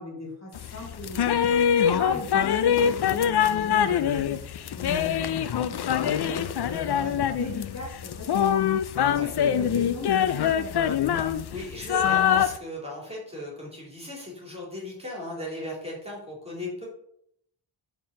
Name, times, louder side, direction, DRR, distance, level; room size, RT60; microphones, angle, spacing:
voice 1, 0.0-4.4 4.6-5.3 5.5-8.3 8.6-8.7 9.1-11.0, left 2 dB, 35° left, -3 dB, 2.0 m, -39 dB
sound 1, 0.5-12.6, left 9 dB, 55° left, 0.5 m, -24 dB
voice 2, 11.5-16.9, left 1 dB, 10° right, -4 dB, 3.0 m, -37 dB
5.5 x 4.4 x 6.3 m, 0.70 s
wide cardioid pair, 135°, 48 cm